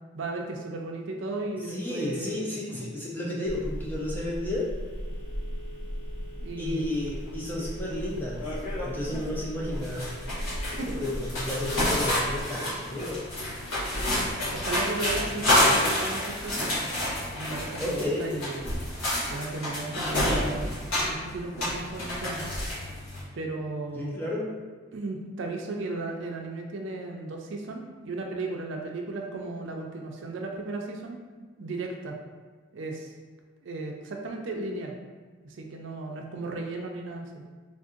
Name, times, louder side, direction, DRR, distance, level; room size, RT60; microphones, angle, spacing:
voice 1, 0.1-2.4 6.4-6.9 10.8-10.9 14.5-16.7 17.3-18.7 19.3-20.7 21.0-22.4 23.3-24.2 24.9-32.2 32.7-33.1 33.6-35.0 35.4-37.4, right 2 dB, 70° right, 1 dB, 0.4 m, -35 dB
voice 2, 1.7-4.7 6.6-8.5 8.8-10.2 10.7-13.2 17.8-18.3 23.9-24.5, left 1 dB, 10° left, -4 dB, 0.4 m, -32 dB
Telephone, 3.5-12.4, equal, 60° left, 0.6 m, -37 dB
sound 1, 7.3-7.4 7.7-7.9 8.4-9.3 9.6-23.2, left 1 dB, 85° left, 1.2 m, -29 dB
3.6 x 2.6 x 2.4 m, 1.4 s
head